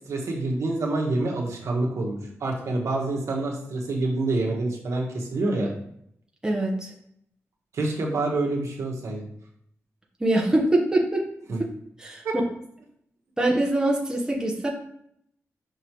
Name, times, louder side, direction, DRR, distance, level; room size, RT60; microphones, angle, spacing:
voice 1, 0.1-5.7 7.7-9.3 11.5-11.6 12.2-12.3, right 2 dB, 75° right, -1 dB, 1.4 m, -27 dB
voice 2, 6.4-6.9 10.2-11.3 11.6-11.7 12.0-12.2 13.4-14.7, right 1 dB, 15° right, -1 dB, 1.0 m, -23 dB
5.7 x 5.4 x 3.1 m, 0.71 s
wide cardioid pair, 130°, 5 cm